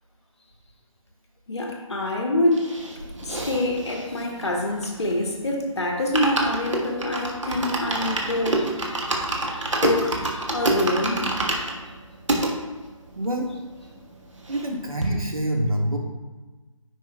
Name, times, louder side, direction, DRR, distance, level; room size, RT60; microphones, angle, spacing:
voice 1, 1.5-2.7 3.2-11.3, left 1 dB, 55° left, 1 dB, 1.4 m, -26 dB
sound 1, 2.5-5.3 5.6-5.7 6.0-12.5 13.1-13.2 13.3-13.4 13.8-14.7 15.0-15.1, right 2 dB, 60° right, 1.3 m, -27 dB
voice 2, 13.1-13.5 14.5-16.0, right 1 dB, 85° right, 0 dB, 1.6 m, -26 dB
9.9 x 5.2 x 2.2 m, 1.2 s
figure-of-eight pair, 150°, 18 cm